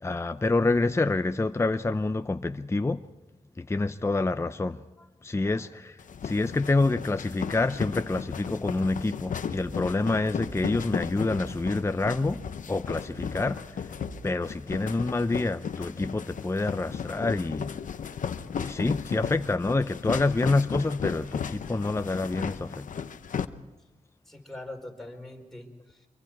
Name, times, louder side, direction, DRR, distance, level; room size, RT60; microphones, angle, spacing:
voice 1, 0.0-3.0 3.6-4.8 5.2-13.9 14.2-17.7 18.6-23.1, left 3 dB, 20° left, 0.6 m, -27 dB
sound 1, 6.0-23.4, left 7 dB, 80° left, 0.8 m, -35 dB
sound 2, 9.5-10.8 11.3-12.6 13.1-14.7, right 3 dB, 80° right, 1.3 m, -48 dB
voice 2, 24.3-26.1, left 1 dB, 5° left, 4.5 m, -43 dB
25.0 x 23.5 x 4.7 m
cardioid pair, 75°, 13 cm